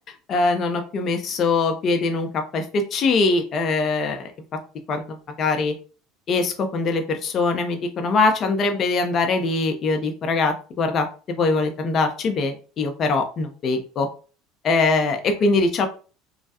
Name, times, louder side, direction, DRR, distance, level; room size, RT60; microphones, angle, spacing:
voice 1, 0.3-4.3 4.9-5.7 6.3-14.1 14.6-15.9, left 3 dB, 45° left, 5 dB, 0.7 m, -22 dB
3.3 x 2.2 x 2.8 m, 0.37 s
hypercardioid pair, 75°, 0 cm